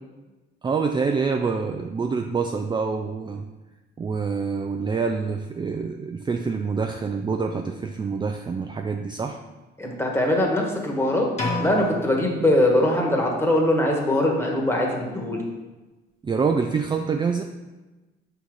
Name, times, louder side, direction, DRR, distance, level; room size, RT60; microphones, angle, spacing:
voice 1, 0.6-3.4 4.0-9.4 16.2-17.4, right 5 dB, 25° right, 4 dB, 0.4 m, -26 dB
voice 2, 9.8-11.3 11.6-15.4, left 1 dB, 10° left, 0 dB, 1.4 m, -22 dB
sound 1, 11.4-13.3, left 1 dB, 35° left, 1.5 m, -31 dB
5.6 x 4.0 x 4.8 m, 1.1 s
cardioid pair, 90°, 20 cm